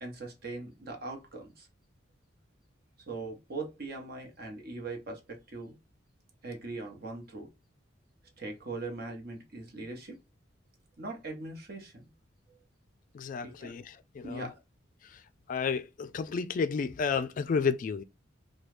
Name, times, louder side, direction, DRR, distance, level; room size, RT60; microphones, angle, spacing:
voice 1, 0.0-1.7 3.1-5.8 6.4-7.5 8.4-10.2 11.0-12.0 13.4-13.8 14.2-14.6, right 3 dB, 55° right, 1.0 m, -40 dB
voice 2, 13.1-14.5 15.0-15.2 15.5-18.0, left 5 dB, 45° left, 0.3 m, -32 dB
3.0 x 2.3 x 3.2 m
head